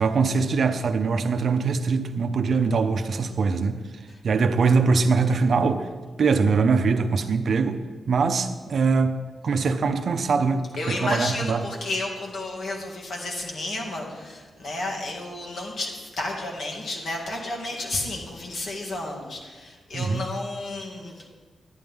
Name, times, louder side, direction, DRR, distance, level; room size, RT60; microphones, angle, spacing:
voice 1, 0.0-3.8 4.2-5.9 6.2-11.7 19.9-20.3, right 4 dB, 65° right, 0.6 m, -22 dB
voice 2, 10.8-21.3, left 2 dB, 70° left, 2.1 m, -32 dB
11.5 x 9.4 x 3.6 m
cardioid pair, 90°, 0 cm